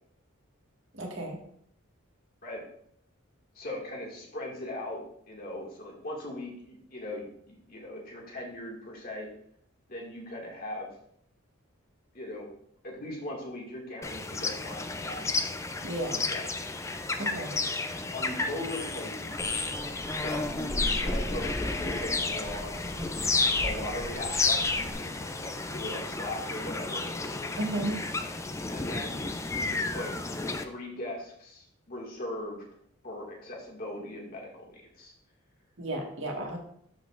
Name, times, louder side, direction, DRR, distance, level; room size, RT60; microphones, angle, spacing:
voice 1, 0.9-1.4 15.8-16.2 17.2-17.6 27.6-28.0 35.8-36.6, right 1 dB, 65° right, 0 dB, 1.7 m, -33 dB
voice 2, 3.6-5.0 5.3-9.3 9.9-10.9 12.1-12.5 12.8-15.4 16.1-16.5 18.1-19.7 20.1-23.0 23.6-25.1 25.4-27.0 28.7-30.1 30.6-32.6 33.0-35.1, left 1 dB, 45° left, -2 dB, 2.0 m, -39 dB
sound 1, 14.0-30.6, left 3 dB, 15° left, 0.4 m, -32 dB
sound 2, 19.4-24.9, equal, 5° right, 1.3 m, -38 dB
sound 3, 20.6-26.3, left 1 dB, 85° left, 3.5 m, -45 dB
12.5 x 5.3 x 2.5 m, 0.67 s
head